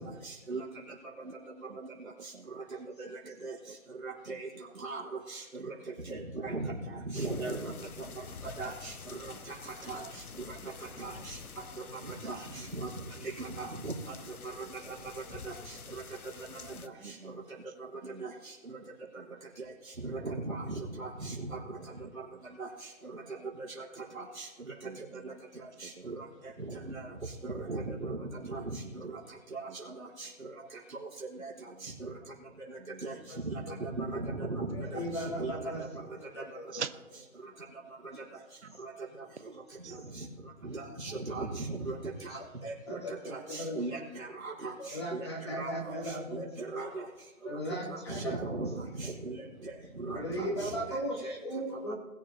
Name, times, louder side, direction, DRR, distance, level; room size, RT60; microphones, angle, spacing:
voice 1, 0.2-0.6 3.4-3.5 4.0-4.5 4.8-5.0 5.3-5.4 6.1-6.7 7.1-7.7 8.6-8.9 9.9-10.0 11.0-11.1 12.2-12.4 13.4-13.9 20.0-21.3 22.6-22.7 24.4-24.5 27.4-28.1 28.4-28.6 29.5-29.6 30.2-30.3 33.0-33.1 33.8-34.8 35.4-35.7 40.7-41.9 42.6-42.7 43.3-44.7 45.1-45.3 45.6-45.7 46.3-47.0 47.9-48.7 49.0-49.3 50.1-51.3, right 3 dB, 70° right, -6 dB, 4.2 m, -37 dB
voice 2, 1.7-2.6 3.4-3.8 4.3-4.4 5.6-5.7 9.3-9.5 10.6-11.2 12.2-12.3 14.8-15.4 17.0-17.4 18.0-18.2 18.8-18.9 19.2-19.4 21.2-21.3 24.8-25.0 25.3-25.4 25.8-26.1 26.8-26.9 28.8-29.1 29.7-29.9 31.8-31.9 32.8-33.0 36.7-36.9 39.8-40.0, right 6 dB, 55° right, 10 dB, 0.5 m, -46 dB
sound 1, 7.1-16.9, left 5 dB, 85° left, 0.9 m, -48 dB
voice 3, 34.7-35.8 36.4-36.8 42.3-42.5 42.9-43.8 44.8-46.4 47.4-48.6 50.1-51.9, equal, 20° left, -4 dB, 2.0 m, -37 dB
21.0 x 7.1 x 2.9 m, 1.1 s
figure-of-eight pair, 180°, 43 cm